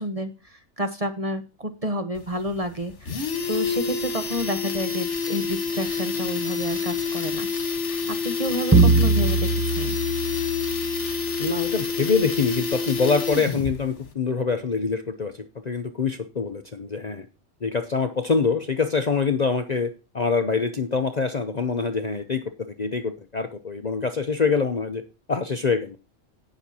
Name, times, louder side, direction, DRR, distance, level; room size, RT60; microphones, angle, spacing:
voice 1, 0.0-7.5 7.9-10.0, equal, 30° right, 8 dB, 1.0 m, -30 dB
sound 1, 2.2-2.3 2.6-2.7 2.9-13.8 14.0-14.1, left 5 dB, 60° left, 1.7 m, -28 dB
sound 2, 8.7-11.5, right 3 dB, 15° right, 0.7 m, -21 dB
voice 2, 11.4-17.3 17.6-25.0 25.3-26.0, left 4 dB, 40° left, 7 dB, 0.7 m, -25 dB
17.5 x 6.4 x 2.9 m, 0.30 s
omnidirectional pair, 1.4 m